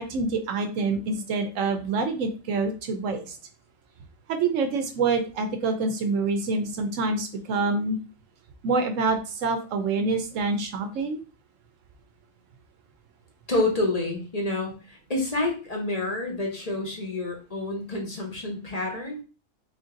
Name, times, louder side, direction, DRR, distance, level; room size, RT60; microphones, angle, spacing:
voice 1, 0.0-3.4 4.3-8.0 8.6-11.2, right 3 dB, 70° right, 6 dB, 0.9 m, -26 dB
voice 2, 13.5-19.2, left 2 dB, 30° left, 1 dB, 0.9 m, -28 dB
3.7 x 2.6 x 3.7 m, 0.34 s
omnidirectional pair, 1.4 m